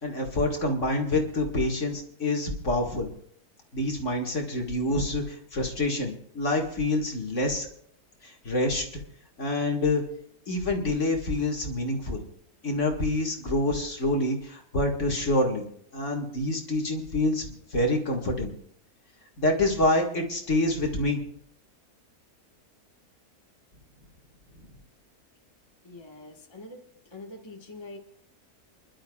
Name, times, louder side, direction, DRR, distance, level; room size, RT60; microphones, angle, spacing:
voice 1, 0.0-3.1 3.7-7.7 8.2-9.0 9.4-10.0 10.5-12.2 12.6-15.7 15.9-18.5 19.4-21.2, left 2 dB, 50° left, 1 dB, 2.2 m, -27 dB
voice 2, 25.8-26.8 27.1-28.0, left 2 dB, 15° left, 1 dB, 1.5 m, -44 dB
29.0 x 11.5 x 2.4 m, 0.67 s
omnidirectional pair, 1.7 m